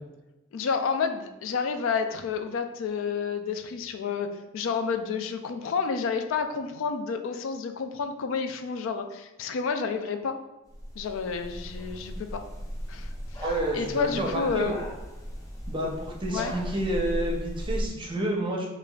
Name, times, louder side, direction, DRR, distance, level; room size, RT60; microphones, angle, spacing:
voice 1, 0.5-10.4 11.0-12.4 12.9-13.4 13.7-14.7 16.3-16.5, left 5 dB, 75° left, 7 dB, 0.3 m, -30 dB
sound 1, 10.7-17.9, equal, 15° left, 0.5 m, -36 dB
voice 2, 13.4-14.8 15.7-18.7, right 1 dB, 25° right, -1 dB, 0.6 m, -29 dB
4.9 x 2.4 x 2.3 m, 1.0 s
head